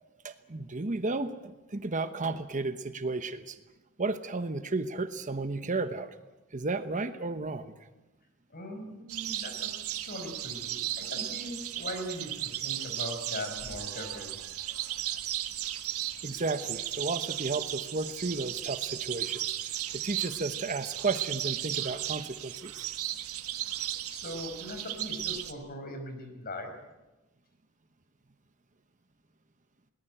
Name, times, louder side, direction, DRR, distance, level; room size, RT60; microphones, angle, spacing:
voice 1, 0.2-3.6 4.0-6.1 6.5-7.7 16.2-22.9, right 3 dB, 35° right, 10 dB, 1.0 m, -33 dB
voice 2, 8.5-14.3 24.1-26.7, left 1 dB, 45° left, 6 dB, 5.1 m, -40 dB
sound 1, 9.1-25.5, right 12 dB, 90° right, 1.5 m, -35 dB
21.5 x 19.0 x 9.1 m, 1.0 s
head